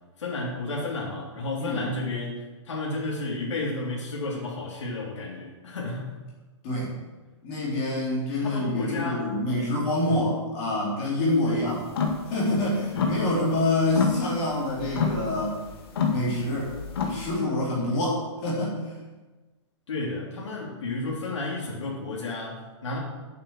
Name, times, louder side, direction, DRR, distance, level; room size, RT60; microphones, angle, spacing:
voice 1, 0.2-6.1 8.4-9.3 10.0-10.2 11.4-11.7 12.9-13.1 19.9-23.0, left 2 dB, 75° left, -3 dB, 3.2 m, -32 dB
voice 2, 7.4-11.8 12.3-15.6 16.1-18.8, left 2 dB, 25° left, -5 dB, 3.8 m, -26 dB
sound 1, 11.8-12.3 12.6-13.6 13.9-17.4, left 4 dB, 55° left, 2.0 m, -28 dB
9.0 x 7.8 x 7.7 m, 1.2 s
hypercardioid pair, 180°, 15 cm